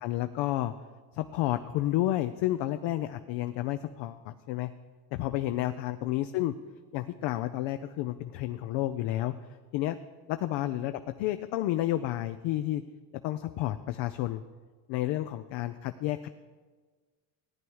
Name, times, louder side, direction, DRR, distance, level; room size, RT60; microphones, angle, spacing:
voice 1, 0.0-0.7 1.1-4.7 5.1-6.5 6.9-9.3 9.7-10.0 10.3-10.9 11.2-12.8 13.2-14.4 14.9-16.3, left 14 dB, 65° left, 9 dB, 0.7 m, -30 dB
15.0 x 9.5 x 4.7 m, 1.4 s
supercardioid pair, 85°, 46 cm